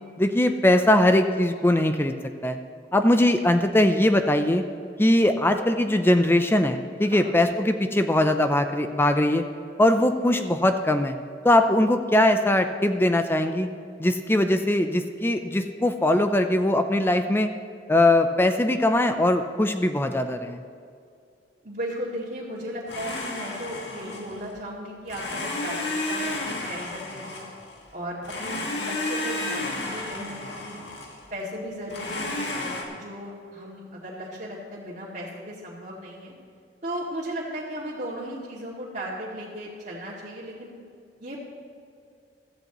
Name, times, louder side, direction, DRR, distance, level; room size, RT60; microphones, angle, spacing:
voice 1, 0.2-2.1 2.4-2.6 2.9-4.6 5.0-9.4 9.8-11.2 11.4-13.7 14.0-17.5 17.9-20.6, left 1 dB, 15° left, 7 dB, 0.5 m, -21 dB
voice 2, 7.0-7.3 21.6-27.4 27.9-30.8 31.3-36.3 36.8-40.7 41.2-41.4, equal, 45° right, -7 dB, 2.3 m, -36 dB
Domestic sounds home sounds, 22.9-24.5 25.1-27.8 28.2-31.3 31.9-32.8, left 2 dB, 75° left, 2.1 m, -32 dB
16.0 x 13.5 x 3.1 m, 2.4 s
head